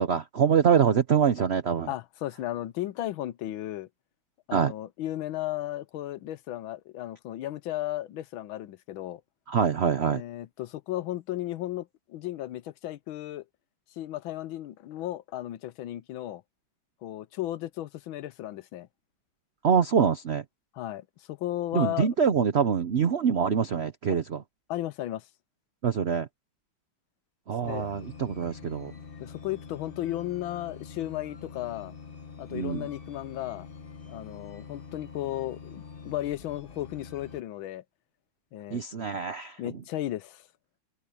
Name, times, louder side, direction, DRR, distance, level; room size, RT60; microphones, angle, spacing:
voice 1, 0.0-1.9 4.5-4.7 9.5-10.2 19.6-20.4 21.7-24.4 25.8-26.3 27.5-28.9 32.5-32.9 38.7-39.6, right 7 dB, 70° right, 0.6 m, -25 dB
voice 2, 1.9-3.9 4.5-9.2 10.1-13.4 14.0-16.4 17.0-18.9 20.7-22.1 24.1-24.2 24.7-25.2 27.6-27.9 29.2-31.9 32.4-33.7 34.1-37.8 38.5-38.8 39.6-40.5, left 14 dB, 80° left, 1.5 m, -35 dB
sound 1, 27.6-37.4, left 5 dB, 30° left, 1.3 m, -45 dB
omnidirectional pair, 2.2 m